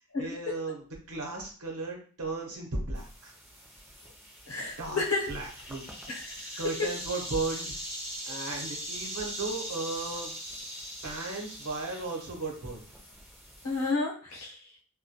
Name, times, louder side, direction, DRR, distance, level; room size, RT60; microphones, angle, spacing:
voice 1, 0.2-0.8 1.1-3.3 4.8-5.0 5.3-5.9 6.6-7.8 8.3-10.3 11.0-12.8, right 3 dB, 85° right, 0 dB, 0.8 m, -35 dB
sound 1, 2.9-13.9, equal, 10° right, 0.4 m, -41 dB
voice 2, 4.5-5.3 6.1-6.5 6.8-6.9 13.6-14.6, left 3 dB, 75° left, -1 dB, 0.8 m, -31 dB
2.2 x 2.2 x 2.7 m, 0.40 s
head